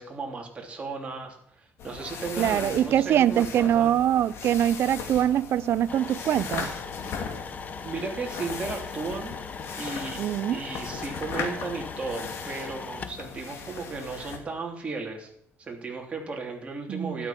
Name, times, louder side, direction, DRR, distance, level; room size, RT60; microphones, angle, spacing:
voice 1, 0.0-3.9 7.8-9.4 9.8-10.2 10.5-15.3 15.6-17.3, right 4 dB, 25° right, 3.3 m, -35 dB
sound 1, 1.8-14.4, left 5 dB, 60° left, 2.7 m, -38 dB
voice 2, 2.4-6.7 10.2-10.6 16.9-17.3, right 10 dB, 55° right, 0.6 m, -23 dB
sound 2, 5.9-13.2, left 5 dB, 30° left, 1.0 m, -40 dB
12.5 x 11.5 x 5.9 m
cardioid pair, 140°, 5 cm